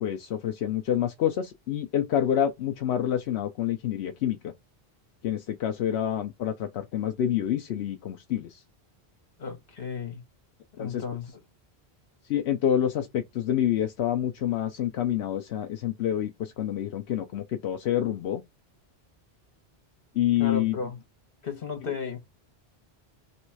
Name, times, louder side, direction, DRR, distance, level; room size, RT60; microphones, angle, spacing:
voice 1, 0.0-4.5 5.2-8.6 10.8-11.0 12.3-18.4 20.1-20.8, left 10 dB, 85° left, 0.9 m, -27 dB
voice 2, 9.4-10.2 10.8-11.3 20.4-21.0 21.4-22.2, left 5 dB, 60° left, 1.6 m, -34 dB
3.2 x 3.1 x 4.6 m
omnidirectional pair, 1.1 m